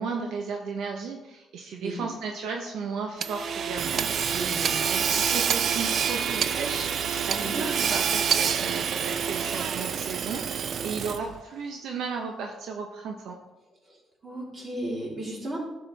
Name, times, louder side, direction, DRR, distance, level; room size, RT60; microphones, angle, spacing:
voice 1, 0.0-4.1 4.9-13.4, right 5 dB, 80° right, 2 dB, 0.9 m, -34 dB
Hammer / Sawing, 3.2-11.4, right 7 dB, 60° right, 0.4 m, -27 dB
voice 2, 4.1-4.8 7.3-7.6 13.9-14.0 14.2-15.6, right 1 dB, 40° right, -3 dB, 3.4 m, -35 dB
11.5 x 6.7 x 3.4 m, 1.0 s
cardioid pair, 90°, 0 cm